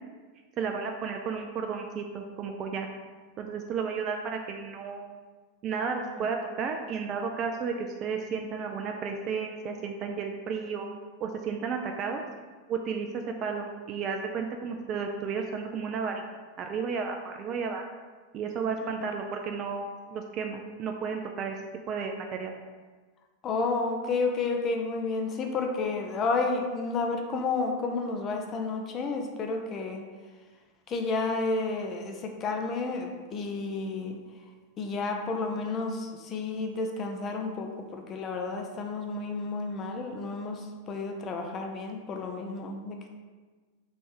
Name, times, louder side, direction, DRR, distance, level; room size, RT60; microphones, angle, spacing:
voice 1, 0.6-2.9 3.4-5.2 5.6-10.9 11.2-12.2 12.7-16.2 16.6-17.8 18.3-21.6 21.9-22.5, right 5 dB, 35° right, 3 dB, 0.3 m, -33 dB
voice 2, 23.4-30.0 30.9-34.2 34.8-43.1, left 3 dB, 30° left, 3 dB, 0.5 m, -31 dB
3.2 x 3.1 x 4.4 m, 1.4 s
figure-of-eight pair, 90°, 0 cm